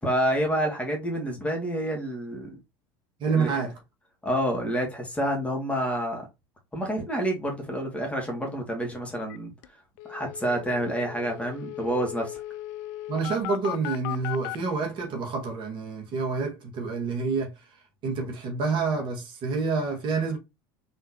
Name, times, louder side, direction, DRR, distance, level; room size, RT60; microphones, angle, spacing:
voice 1, 0.0-2.6 3.4-3.5 4.2-6.2 6.7-9.5 10.1-12.4, equal, 10° left, 2.2 m, -28 dB
voice 2, 3.2-3.7 13.1-20.4, right 4 dB, 45° right, 1.8 m, -28 dB
sound 1, 9.3-9.4 9.6-9.7 10.0-14.6, left 15 dB, 65° left, 0.5 m, -37 dB
4.2 x 3.8 x 2.9 m
hypercardioid pair, 90°, 12 cm